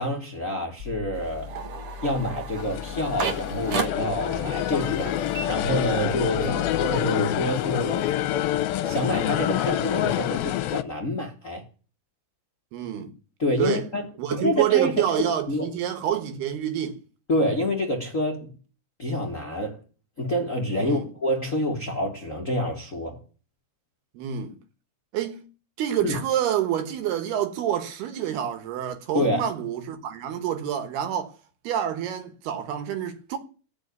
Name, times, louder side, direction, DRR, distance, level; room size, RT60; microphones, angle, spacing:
voice 1, 0.0-1.5 2.0-8.1 8.8-11.6 13.4-14.9 15.2-15.7 17.3-18.5 19.0-19.8 20.2-23.2 26.0-26.1 29.1-29.5, left 1 dB, 35° left, 1.2 m, -27 dB
sound 1, 0.8-7.0, left 7 dB, 15° right, 4.1 m, -41 dB
sound 2, 1.1-6.3 6.6-8.1, right 5 dB, 55° right, 1.6 m, -35 dB
sound 3, 2.6-10.8, left 12 dB, 75° left, 2.5 m, -27 dB
voice 2, 12.7-13.1 13.6-13.9 14.2-17.0 20.8-21.1 24.2-24.6 25.1-25.5 25.8-31.4 31.7-33.4, right 10 dB, 85° right, 3.4 m, -27 dB
15.5 x 6.4 x 9.5 m
omnidirectional pair, 4.5 m